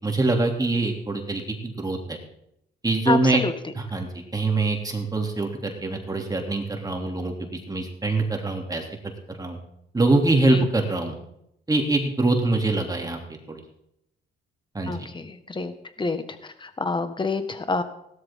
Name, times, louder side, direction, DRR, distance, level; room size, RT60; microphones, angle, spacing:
voice 1, 0.0-2.2 2.8-3.4 3.8-8.8 9.3-9.6 9.9-11.2 11.7-13.2 13.5-13.6 14.7-15.1, right 2 dB, 20° right, 2 dB, 2.9 m, -24 dB
voice 2, 3.1-3.5 10.5-10.6 14.9-15.7 16.0-17.8, left 3 dB, 25° left, 9 dB, 1.6 m, -27 dB
17.0 x 13.0 x 3.7 m, 0.77 s
cardioid pair, 90°, 20 cm